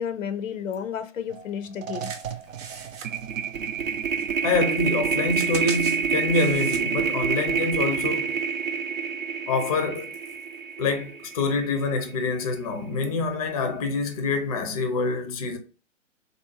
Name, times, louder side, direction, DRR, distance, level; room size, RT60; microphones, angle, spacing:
voice 1, 0.0-2.1, left 8 dB, 85° left, 0.5 m, -31 dB
sound 1, 1.3-1.5 1.8-12.0, right 6 dB, 90° right, 0.5 m, -28 dB
sound 2, 2.0-3.9 4.2-7.1 7.6-7.7, right 6 dB, 30° right, 0.6 m, -40 dB
voice 2, 4.4-8.4 9.5-10.1 10.8-15.6, left 3 dB, 30° left, 0.4 m, -26 dB
3.2 x 2.5 x 2.7 m
figure-of-eight pair, 125°, 38 cm